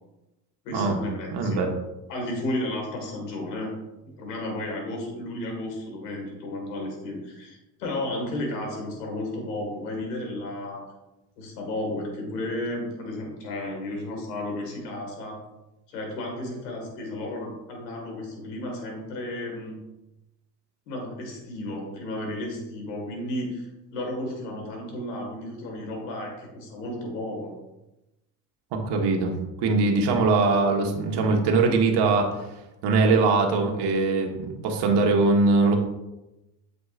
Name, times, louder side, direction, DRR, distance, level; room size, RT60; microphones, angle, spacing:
voice 1, 0.6-1.7 2.1-3.7 4.2-10.9 11.4-15.4 15.9-19.8 20.9-27.6 30.1-30.2, left 1 dB, 90° left, 1 dB, 2.0 m, -33 dB
voice 2, 1.3-1.7 28.7-29.3 29.6-32.3 32.8-35.7, right 3 dB, 60° right, 2 dB, 1.4 m, -21 dB
8.2 x 5.2 x 2.5 m, 0.96 s
hypercardioid pair, 75°, 47 cm